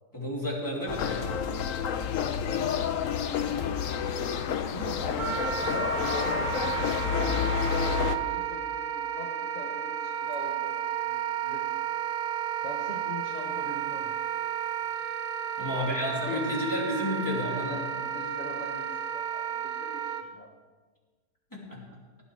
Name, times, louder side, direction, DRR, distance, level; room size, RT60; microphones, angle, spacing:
voice 1, 0.1-1.4 15.6-17.7 21.5-21.8, left 1 dB, 10° left, -3 dB, 3.0 m, -31 dB
sound 1, 0.9-8.2, left 7 dB, 65° left, 1.0 m, -29 dB
voice 2, 4.7-6.5 7.1-11.8 12.6-14.5 15.7-16.7 17.2-20.5, left 1 dB, 30° left, 0 dB, 1.2 m, -43 dB
Wind instrument woodwind instrument, 5.2-20.2, right 9 dB, 85° right, 1.2 m, -32 dB
16.5 x 9.3 x 4.8 m, 1.4 s
omnidirectional pair, 1.6 m